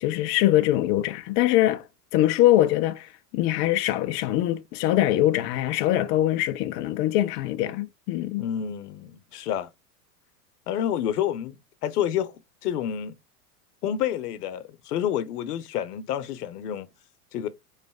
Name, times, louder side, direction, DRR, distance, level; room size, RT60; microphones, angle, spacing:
voice 1, 0.0-1.9 2.1-8.5, left 14 dB, 30° left, 0.4 m, -23 dB
voice 2, 8.4-9.7 10.7-11.6 11.8-12.3 12.6-13.1 13.8-16.9 17.3-17.5, left 10 dB, 75° left, 0.8 m, -28 dB
4.0 x 3.1 x 3.4 m
hypercardioid pair, 105°, 47 cm